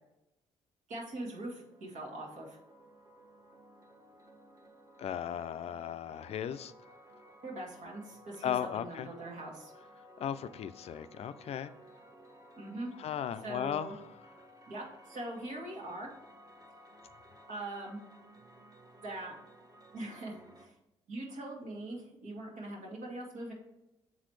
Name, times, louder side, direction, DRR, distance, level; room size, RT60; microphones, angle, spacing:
voice 1, 0.9-2.6 7.4-9.7 12.6-12.9 13.4-14.0 14.7-16.1 17.5-18.0 19.0-19.4 19.9-20.7 21.1-23.5, right 1 dB, 70° right, -2 dB, 1.9 m, -42 dB
sound 1, 1.3-20.7, equal, 30° right, 1.0 m, -57 dB
voice 2, 5.0-6.7 8.4-9.1 10.2-11.7 13.0-14.0, left 9 dB, 55° left, 12 dB, 0.4 m, -36 dB
7.2 x 4.1 x 3.1 m, 0.90 s
supercardioid pair, 65°, 13 cm